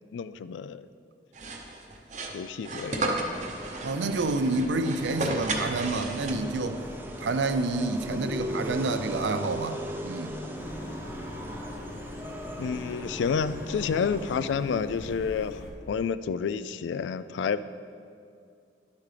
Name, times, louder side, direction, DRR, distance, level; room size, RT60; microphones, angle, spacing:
voice 1, 0.1-0.9 2.3-3.1 12.6-17.6, left 6 dB, 85° left, 14 dB, 0.3 m, -30 dB
sound 1, 1.3-6.7, right 2 dB, 40° right, 0.8 m, -33 dB
sound 2, 3.2-14.5, equal, 10° right, 0.5 m, -38 dB
voice 2, 3.8-6.8 7.2-10.4, right 3 dB, 80° right, 10 dB, 0.5 m, -28 dB
sound 3, 10.5-15.7, left 1 dB, 65° left, 1.2 m, -43 dB
11.0 x 8.4 x 3.3 m, 2.4 s
head